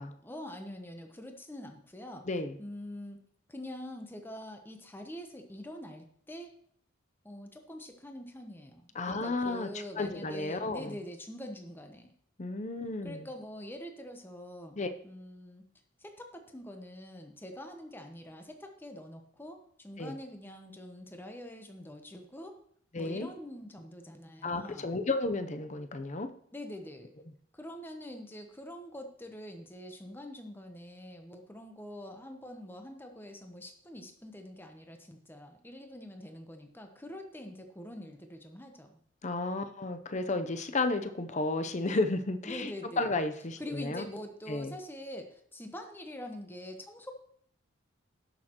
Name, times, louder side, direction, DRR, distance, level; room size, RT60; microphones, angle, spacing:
voice 1, 0.2-2.3 2.6-3.2 3.5-6.5 7.2-12.1 13.0-14.8 15.0-15.7 16.0-22.6 23.0-24.9 26.5-27.1 27.5-39.0 42.4-43.2 43.6-47.1, left 1 dB, 10° left, 5 dB, 0.9 m, -45 dB
voice 2, 9.0-9.7 10.0-10.9 12.4-13.3 14.7-14.9 20.0-20.2 22.9-23.3 24.4-26.3 39.2-44.1 44.5-44.7, left 2 dB, 35° left, 9 dB, 0.7 m, -32 dB
17.5 x 6.5 x 3.0 m, 0.64 s
head